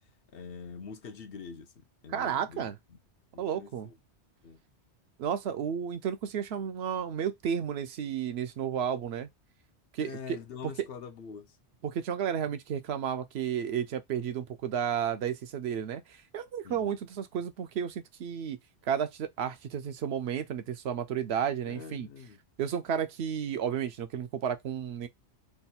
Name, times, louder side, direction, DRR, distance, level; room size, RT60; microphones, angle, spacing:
voice 1, 0.3-3.0 3.3-3.9 4.4-4.6 10.0-11.6 16.6-17.0 21.7-22.4, left 6 dB, 65° left, 0.8 m, -45 dB
voice 2, 2.1-2.8 3.4-3.9 5.2-9.3 9.9-10.2 11.8-18.6 18.8-22.1 22.6-25.1, right 8 dB, 70° right, 0.8 m, -32 dB
3.4 x 2.3 x 4.1 m
omnidirectional pair, 1.2 m